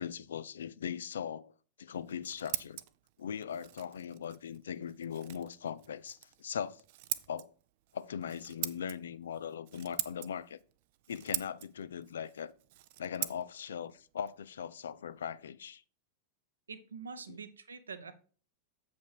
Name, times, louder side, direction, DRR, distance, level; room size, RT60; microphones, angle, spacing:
voice 1, 0.0-1.5 1.8-2.8 3.2-6.8 7.3-7.5 7.9-10.6 11.1-12.5 13.0-15.8 17.3-17.4, left 8 dB, 65° left, 0.4 m, -40 dB
Scissors, 1.9-15.5, right 15 dB, 50° right, 0.5 m, -44 dB
voice 2, 16.7-18.1, right 5 dB, 75° right, 0.8 m, -45 dB
7.7 x 5.2 x 4.7 m
figure-of-eight pair, 90°, 0 cm